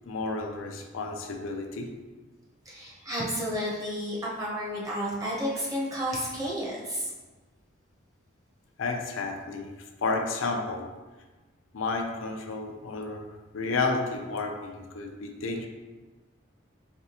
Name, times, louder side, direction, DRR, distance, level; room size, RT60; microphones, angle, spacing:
voice 1, 0.1-1.9 8.8-9.7 10.0-10.9 11.7-13.3 13.5-15.7, left 3 dB, 90° left, 3 dB, 0.5 m, -31 dB
voice 2, 2.6-7.1, equal, 20° right, -5 dB, 0.9 m, -31 dB
4.0 x 3.4 x 2.9 m, 1.3 s
head